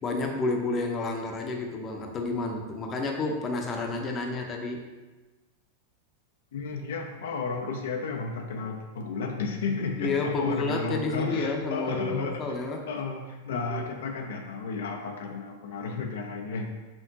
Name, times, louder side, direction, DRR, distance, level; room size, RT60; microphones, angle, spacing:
voice 1, 0.0-4.8 10.0-12.8 13.5-13.9, left 3 dB, 30° left, 2 dB, 0.6 m, -30 dB
voice 2, 6.5-12.6 12.9-16.7, left 4 dB, 80° left, 3 dB, 0.5 m, -33 dB
4.4 x 3.6 x 2.8 m, 1.2 s
hypercardioid pair, 110°, 0 cm